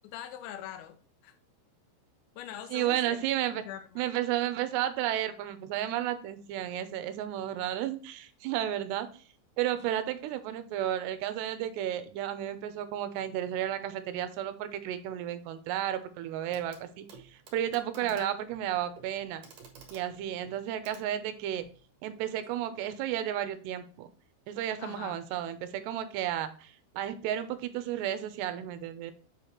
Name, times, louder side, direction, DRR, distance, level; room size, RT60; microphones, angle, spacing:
voice 1, 0.0-1.0 1.2-1.3 2.4-3.2 3.5-4.1 18.0-18.4 24.8-25.2, left 11 dB, 85° left, 7 dB, 3.1 m, -43 dB
voice 2, 2.7-3.6 4.0-9.1 9.6-17.1 17.5-19.4 19.9-21.6 22.0-24.1 24.5-29.1, right 11 dB, 80° right, 10 dB, 2.7 m, -32 dB
Clock, 16.5-16.8 17.1-21.8 23.0-23.1, right 6 dB, 60° right, 2.5 m, -54 dB
8.0 x 4.1 x 4.4 m, 0.40 s
omnidirectional pair, 5.3 m